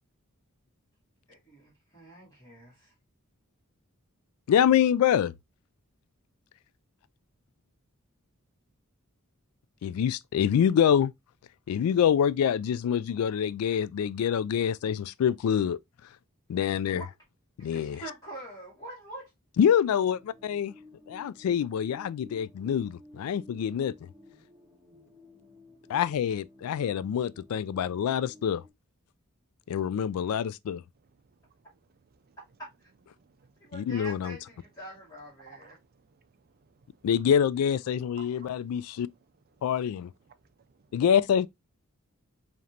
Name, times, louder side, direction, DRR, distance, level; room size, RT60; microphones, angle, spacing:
voice 1, 1.3-2.9 16.8-17.0 17.6-19.3 32.6-32.9 33.6-35.8, right 1 dB, 20° left, 2.3 m, -45 dB
voice 2, 4.5-5.3 9.8-11.1 11.7-15.8 16.5-17.0 17.6-18.0 19.6-20.7 21.1-23.9 25.9-28.6 29.7-30.8 33.7-34.4 37.0-39.1 39.6-40.1 40.9-41.5, left 8 dB, 70° left, 0.3 m, -26 dB
sound 1, 19.6-28.7, left 2 dB, 5° right, 1.6 m, -54 dB
voice 3, 32.0-32.4 33.2-33.7 35.5-36.7 38.2-38.5 40.3-40.4 40.7-40.8, right 7 dB, 45° right, 0.5 m, -56 dB
5.0 x 2.9 x 2.8 m
head